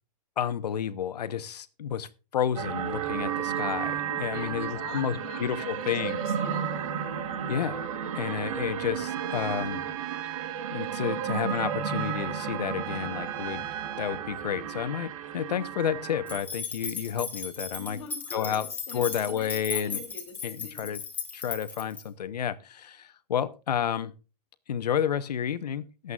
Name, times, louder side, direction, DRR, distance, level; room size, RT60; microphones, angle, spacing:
voice 1, 0.4-6.2 7.5-7.9 8.1-9.8 10.7-13.7 14.0-18.0 18.3-18.6 18.9-20.0 20.4-21.0 21.3-24.1 24.7-26.1, left 8 dB, 85° left, 1.1 m, -31 dB
sound 1, 2.6-16.4, right 8 dB, 55° right, 1.5 m, -33 dB
voice 2, 4.3-6.8 17.8-20.9, left 6 dB, 40° left, 2.8 m, -44 dB
Trumpet, 9.1-14.3, right 15 dB, 30° right, 0.6 m, -40 dB
sound 2, 16.3-22.0, left 5 dB, 10° left, 1.5 m, -36 dB
22.0 x 8.1 x 2.5 m
hypercardioid pair, 165°, 20 cm